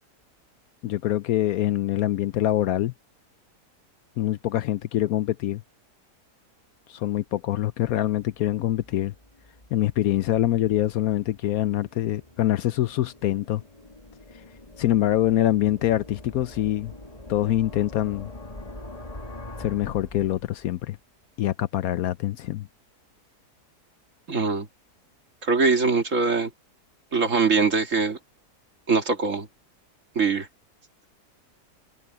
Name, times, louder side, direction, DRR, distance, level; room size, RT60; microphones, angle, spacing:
voice 1, 0.8-2.9 4.2-5.6 6.9-9.1 9.7-13.6 14.8-16.9 17.3-18.3 19.6-21.0 21.4-22.7, left 13 dB, 70° left, 1.0 m, -24 dB
sound 1, 8.3-20.8, left 1 dB, 20° left, 2.6 m, -44 dB
voice 2, 24.3-24.7 25.4-26.5 27.1-28.2 28.9-29.5 30.2-30.5, right 4 dB, 50° right, 2.4 m, -22 dB
omnidirectional pair, 1.7 m